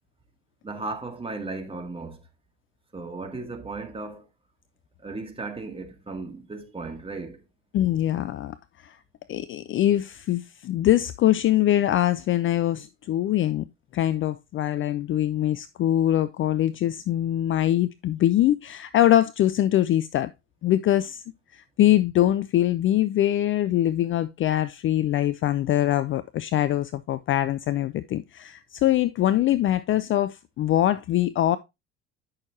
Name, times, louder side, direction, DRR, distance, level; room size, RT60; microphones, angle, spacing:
voice 1, 0.6-2.2 2.9-4.2 5.0-7.4, right 3 dB, 15° right, 1.9 m, -35 dB
voice 2, 7.7-8.6 8.8-9.0 9.3-13.6 13.9-20.3 20.6-21.2 21.5-31.6, left 13 dB, 35° left, 0.5 m, -23 dB
9.5 x 6.3 x 2.8 m
figure-of-eight pair, 60°, 36 cm